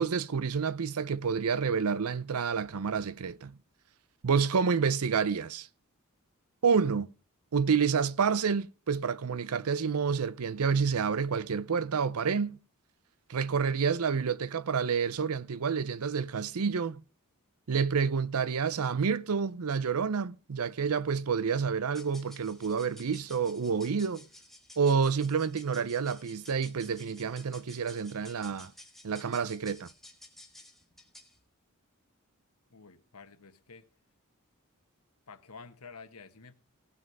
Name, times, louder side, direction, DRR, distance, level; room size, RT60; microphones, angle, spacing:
voice 1, 0.0-3.5 4.2-5.7 6.6-7.1 7.5-12.6 13.3-17.0 17.7-24.2 24.8-28.7 29.0-29.9, right 6 dB, 80° right, 0.6 m, -29 dB
sound 1, 21.9-31.4, left 1 dB, ahead, 1.6 m, -54 dB
voice 2, 32.7-33.9 35.3-36.5, left 4 dB, 90° left, 1.3 m, -50 dB
18.0 x 6.1 x 5.4 m
head